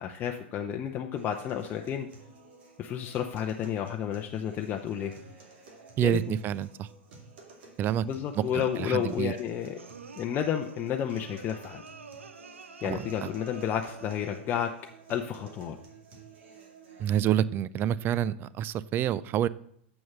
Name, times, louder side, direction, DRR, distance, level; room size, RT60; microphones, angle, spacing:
voice 1, 0.0-2.1 2.8-5.1 6.0-6.3 8.0-9.8 10.1-11.8 12.8-14.7 15.1-15.8, left 9 dB, 30° left, 3 dB, 0.7 m, -31 dB
sound 1, 1.2-17.2, right 4 dB, 65° right, 2.3 m, -52 dB
voice 2, 6.0-6.9 7.8-8.1 8.3-9.3 12.8-13.3 17.0-19.5, right 10 dB, 30° right, 19 dB, 0.4 m, -28 dB
sound 2, 9.8-14.6, right 5 dB, 90° right, 0.7 m, -48 dB
7.2 x 6.2 x 6.0 m, 0.68 s
hypercardioid pair, 105°, 7 cm